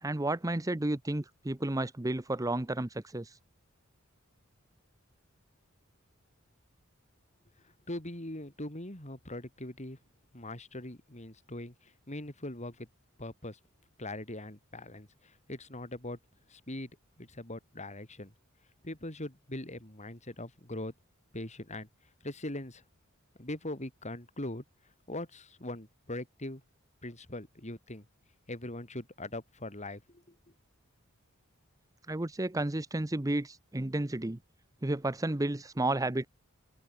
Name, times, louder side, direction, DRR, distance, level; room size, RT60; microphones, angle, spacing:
voice 1, 0.0-3.4 32.1-34.4 34.8-36.3, right 2 dB, 15° right, 0.8 m, -32 dB
voice 2, 7.9-10.0 10.3-12.9 13.2-13.6 14.0-16.2 16.5-16.9 17.2-18.3 18.8-20.9 21.3-21.9 22.2-22.8 23.4-24.6 25.1-26.6 27.0-28.0 28.5-30.3, left 1 dB, 35° left, 4.3 m, -41 dB
open air
head